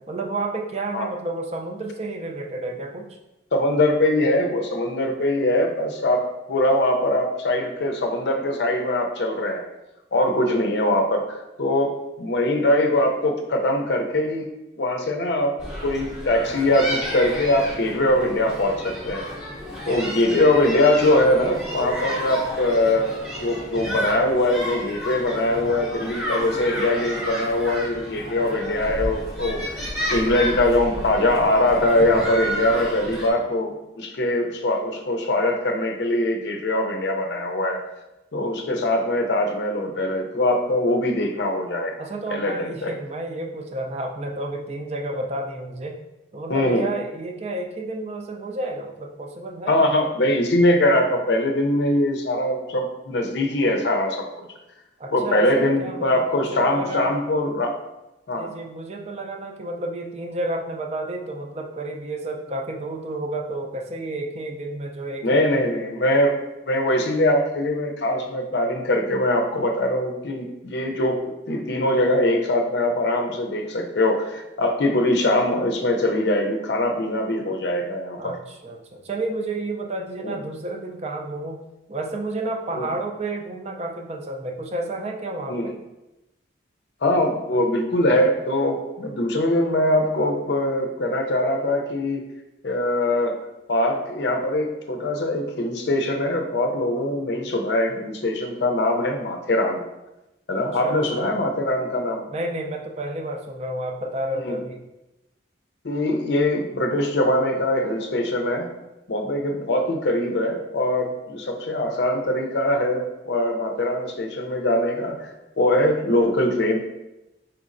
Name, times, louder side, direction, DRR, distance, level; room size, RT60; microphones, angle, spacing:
voice 1, 0.1-3.2 19.7-20.4 38.6-38.8 42.0-46.0 46.3-49.9 55.0-57.1 58.4-65.4 78.2-81.6 81.9-85.7 100.8-101.3 102.3-104.8, right 2 dB, 35° right, 2 dB, 0.4 m, -31 dB
voice 2, 3.5-9.6 10.1-14.5 14.8-15.5 15.8-19.2 19.9-23.1 23.4-37.8 38.3-42.9 46.5-46.9 49.7-54.5 55.1-57.8 58.3-58.5 65.2-66.3 66.7-71.2 71.5-78.3 80.2-80.3 82.7-82.9 85.5-85.6 87.0-92.2 92.6-93.4 93.7-99.8 100.5-102.2 104.3-104.6 105.8-108.7 109.1-115.3 115.6-116.8, left 1 dB, 65° left, 4 dB, 0.5 m, -22 dB
sound 1, 15.6-33.3, equal, ahead, 0.8 m, -31 dB
4.4 x 4.0 x 2.5 m, 0.96 s
head